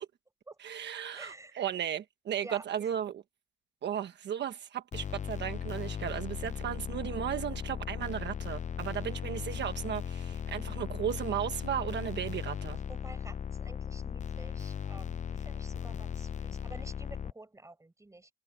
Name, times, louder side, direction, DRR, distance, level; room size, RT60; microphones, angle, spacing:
voice 1, 0.6-3.2 3.8-12.8, right 9 dB, 60° right, 1.2 m, -35 dB
voice 2, 1.1-1.5 2.4-2.6 12.9-18.3, right 2 dB, 15° right, 7.3 m, -50 dB
sound 1, 4.9-17.3, left 8 dB, 35° left, 0.6 m, -37 dB
cardioid pair, 90°, 20 cm